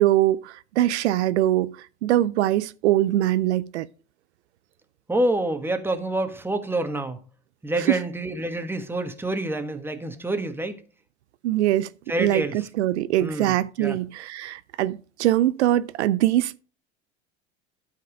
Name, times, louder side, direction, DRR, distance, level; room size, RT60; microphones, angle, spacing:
voice 1, 0.0-3.9 7.8-8.0 11.4-11.9 12.2-16.6, right 14 dB, 80° right, 0.5 m, -22 dB
voice 2, 5.1-7.2 7.6-10.8 12.1-12.7 13.2-13.5 13.8-14.0, right 1 dB, 5° right, 1.4 m, -27 dB
12.0 x 4.7 x 5.0 m
hypercardioid pair, 85°, 33 cm